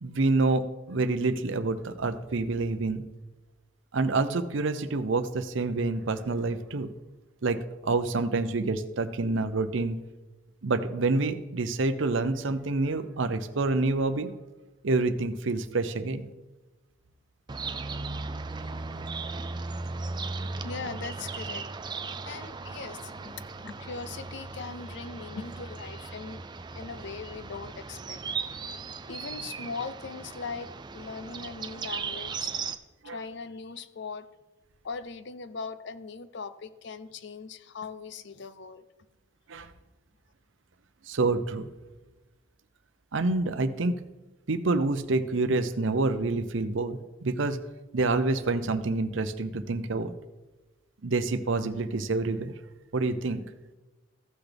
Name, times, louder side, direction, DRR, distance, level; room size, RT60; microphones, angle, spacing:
voice 1, 0.0-3.0 3.9-6.9 7.4-10.0 10.6-14.3 14.8-16.3 33.0-33.2 39.5-39.7 41.1-41.7 43.1-43.9 44.5-47.6 47.9-50.1 51.0-52.5 52.9-53.4, right 3 dB, 65° right, 10 dB, 0.6 m, -27 dB
sound 1, 17.5-32.8, right 4 dB, 20° right, 0.4 m, -37 dB
voice 2, 20.6-21.6 22.3-26.4 26.7-28.2 29.1-32.5 33.0-34.3 34.8-38.8, left 4 dB, 55° left, 13 dB, 0.5 m, -40 dB
15.0 x 5.9 x 3.4 m, 1.1 s
head